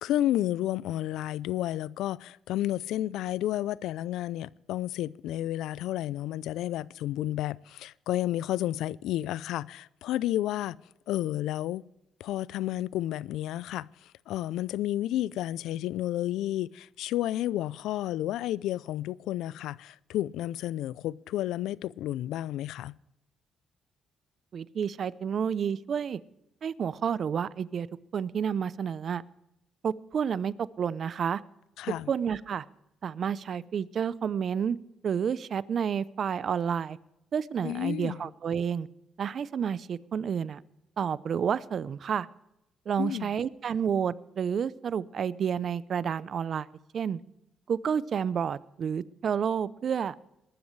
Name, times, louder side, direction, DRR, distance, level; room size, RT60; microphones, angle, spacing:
voice 1, 0.0-10.8 11.1-11.8 12.2-13.9 14.3-23.0 31.8-32.1 37.6-38.2 43.0-43.3, left 13 dB, 90° left, 0.4 m, -31 dB
voice 2, 24.5-26.2 26.6-27.9 28.1-29.2 29.8-31.4 32.1-32.7 33.0-34.8 35.0-37.0 37.3-38.9 39.2-40.6 41.0-42.3 42.9-46.7 46.9-47.2 47.7-50.1, right 7 dB, 55° right, 0.6 m, -30 dB
21.0 x 12.5 x 3.2 m
cardioid pair, 90°, 0 cm